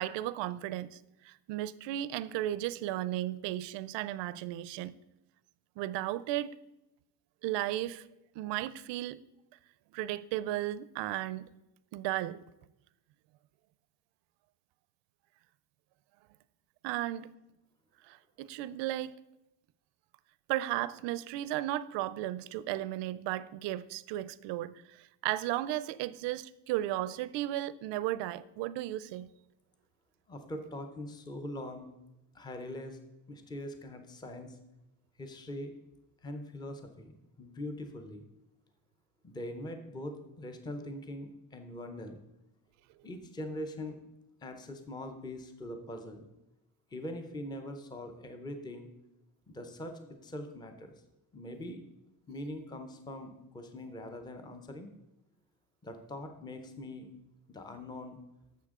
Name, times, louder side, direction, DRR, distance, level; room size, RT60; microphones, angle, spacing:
voice 1, 0.0-4.9 5.8-6.5 7.4-8.1 8.4-9.2 9.9-11.6 11.9-12.4 16.8-17.3 18.0-19.2 20.5-29.3, right 14 dB, 85° right, 0.5 m, -35 dB
voice 2, 30.3-31.9 32.3-33.0 33.3-34.6 35.2-35.7 36.2-38.2 39.2-42.2 43.0-44.0 44.4-46.2 46.9-48.9 49.5-50.9 51.3-51.8 52.3-54.9 55.8-57.1 57.5-58.2, left 1 dB, 10° left, 0.5 m, -42 dB
11.0 x 7.2 x 3.6 m
cardioid pair, 180°, 42 cm